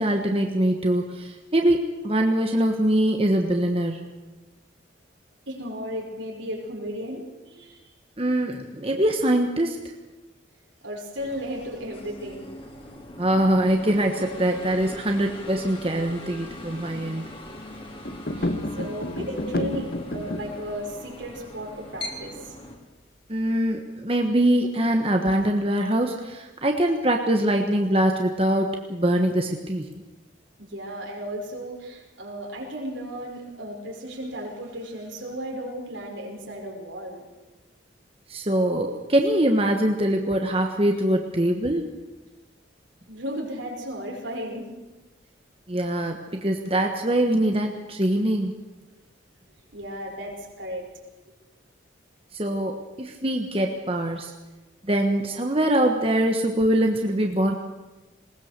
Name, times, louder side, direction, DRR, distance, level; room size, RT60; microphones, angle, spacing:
voice 1, 0.0-4.1 8.2-9.9 13.2-17.3 23.3-29.9 38.3-41.9 45.7-48.5 52.3-54.3 54.8-57.5, right 1 dB, 30° right, 3 dB, 1.3 m, -23 dB
voice 2, 5.5-7.9 10.8-12.5 18.3-22.6 30.6-37.2 43.1-44.7 49.7-50.9, equal, 80° right, 0 dB, 5.4 m, -35 dB
sound 1, 11.1-22.8, left 1 dB, 30° left, 2.8 m, -41 dB
sound 2, 18.0-20.6, left 1 dB, 50° left, 1.1 m, -30 dB
20.5 x 19.0 x 6.7 m, 1.1 s
head